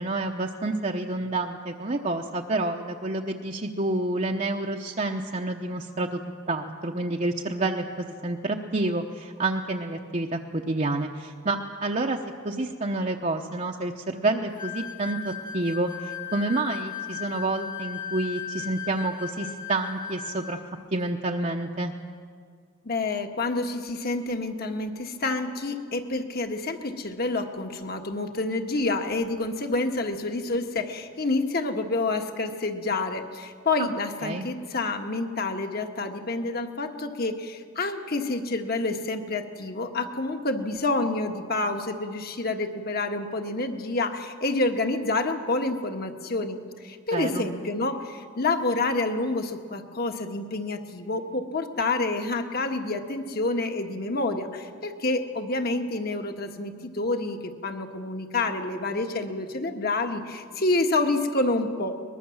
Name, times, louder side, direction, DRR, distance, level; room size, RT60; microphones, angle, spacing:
voice 1, 0.0-6.2 6.5-12.2 12.4-20.6 20.9-21.9 33.8-33.9 34.2-34.5 47.1-47.5, right 2 dB, 35° right, 1 dB, 0.9 m, -29 dB
sound 1, 14.6-20.6, left 9 dB, 20° left, 1.4 m, -37 dB
voice 2, 22.8-62.0, left 2 dB, 45° left, 5 dB, 1.6 m, -28 dB
23.0 x 20.5 x 7.2 m, 2.1 s
head